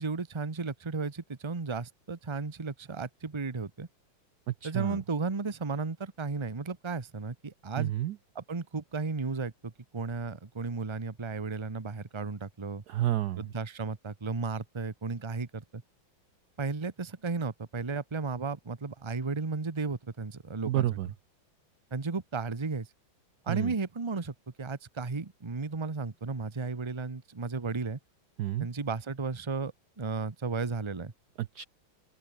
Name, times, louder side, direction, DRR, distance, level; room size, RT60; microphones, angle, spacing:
voice 1, 0.0-3.9 4.6-7.9 8.3-12.8 13.4-15.8 16.6-20.9 21.9-22.9 23.5-28.0 28.6-31.1, right 4 dB, 20° right, 0.9 m, -34 dB
voice 2, 4.6-5.0 7.8-8.2 12.9-13.4 20.7-21.1 23.5-23.7 28.4-28.7 31.4-31.7, right 14 dB, 70° right, 1.0 m, -30 dB
open air
omnidirectional pair, 2.2 m